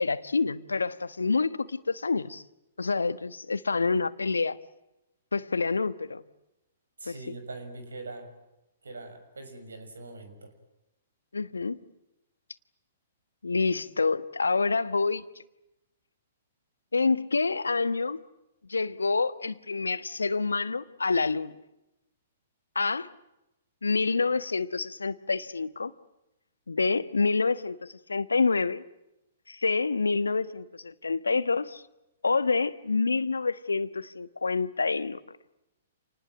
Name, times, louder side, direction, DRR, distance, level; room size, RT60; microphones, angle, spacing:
voice 1, 0.0-2.4 2.8-4.6 5.3-6.2 7.1-7.3 11.3-11.8 13.4-15.2 16.9-18.2 18.7-21.5 22.7-23.1 23.8-25.9 26.7-28.8 29.5-31.8 32.2-35.2, left 4 dB, 80° left, 1.2 m, -27 dB
voice 2, 7.0-8.3 8.8-10.5, right 2 dB, 75° right, 6.1 m, -42 dB
28.5 x 20.0 x 9.0 m
figure-of-eight pair, 115°, 0 cm